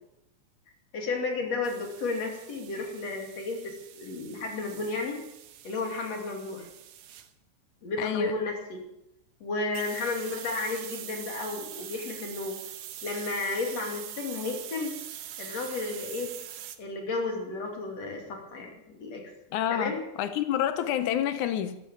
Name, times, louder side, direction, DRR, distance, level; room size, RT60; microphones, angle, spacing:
voice 1, 0.9-5.2 5.6-6.7 7.8-8.8 9.4-12.6 13.0-15.0 15.4-16.4 16.8-19.3 19.7-20.0, left 3 dB, 60° left, 2 dB, 3.8 m, -33 dB
sound 1, 1.6-7.3 9.7-16.8, right 11 dB, 75° right, 2.4 m, -43 dB
voice 2, 8.0-8.4 19.5-21.8, left 10 dB, 85° left, 10 dB, 2.3 m, -29 dB
14.0 x 13.5 x 7.2 m, 0.86 s
omnidirectional pair, 3.4 m